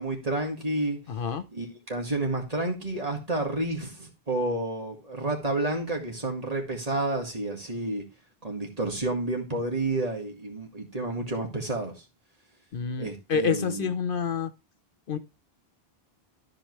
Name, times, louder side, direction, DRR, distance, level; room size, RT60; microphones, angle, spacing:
voice 1, 0.0-1.0 1.5-8.0 8.4-12.0 13.0-13.9, right 2 dB, 40° right, 2.1 m, -30 dB
voice 2, 1.1-1.5 12.7-14.5 15.1-15.2, left 6 dB, 65° left, 0.8 m, -28 dB
13.0 x 5.2 x 3.1 m
omnidirectional pair, 1.0 m